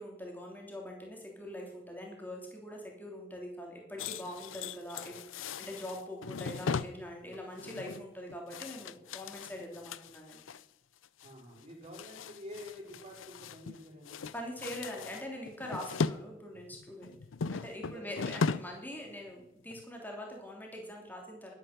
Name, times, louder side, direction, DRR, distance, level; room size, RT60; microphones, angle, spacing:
voice 1, 0.0-10.5 14.3-17.2 17.5-21.5, equal, 10° left, 0 dB, 3.0 m, -43 dB
sound 1, 4.0-10.6 11.0-11.3 11.6-13.8 14.0-16.2 16.5-18.8 19.1-19.3 19.7-19.8, left 5 dB, 85° left, 0.5 m, -38 dB
voice 2, 11.2-14.3 17.8-18.0, left 1 dB, 30° right, -1 dB, 4.3 m, -48 dB
12.0 x 10.5 x 6.7 m, 0.86 s
head